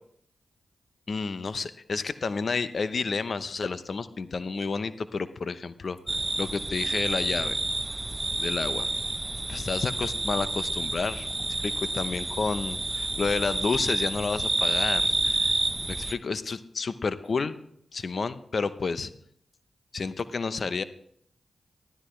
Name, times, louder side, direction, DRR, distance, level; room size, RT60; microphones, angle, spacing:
voice 1, 1.1-6.0 6.4-7.6 8.4-8.9 9.5-11.3 11.6-15.6 15.9-17.6 17.9-19.1 19.9-20.8, left 4 dB, 65° left, 13 dB, 0.8 m, -30 dB
sound 1, 6.1-16.1, right 2 dB, 25° right, 0.9 m, -29 dB
13.5 x 12.5 x 3.3 m, 0.68 s
supercardioid pair, 40°, 0 cm